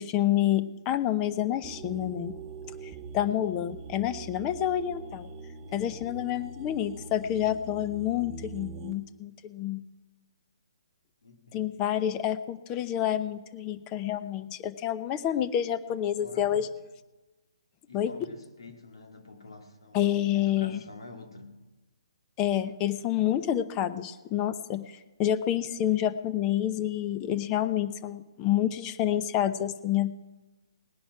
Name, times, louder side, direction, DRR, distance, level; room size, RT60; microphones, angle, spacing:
voice 1, 0.0-2.3 3.1-5.3 5.7-9.8 11.5-16.7 17.9-18.1 19.9-20.8 22.4-30.1, left 11 dB, 25° left, 13 dB, 0.7 m, -28 dB
sound 1, 1.6-8.9, right 5 dB, 15° right, 1.2 m, -43 dB
voice 2, 5.7-6.0 11.2-11.6 16.2-16.7 17.9-21.5, left 2 dB, 85° left, 4 dB, 2.1 m, -47 dB
18.5 x 10.5 x 4.8 m, 1.2 s
hypercardioid pair, 140°, 3 cm